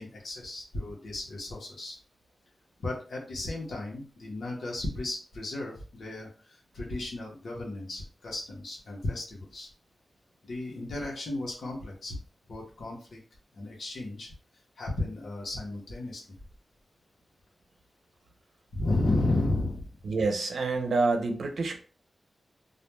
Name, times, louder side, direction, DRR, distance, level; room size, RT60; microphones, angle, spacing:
voice 1, 0.0-2.0 2.8-9.7 10.4-12.2 12.5-13.2 13.5-14.3 14.8-16.4 18.7-20.0, left 2 dB, 70° left, -3 dB, 0.9 m, -33 dB
voice 2, 20.0-21.8, right 3 dB, 75° right, 4 dB, 0.6 m, -27 dB
2.4 x 2.2 x 3.1 m, 0.38 s
wide cardioid pair, 105°, 0 cm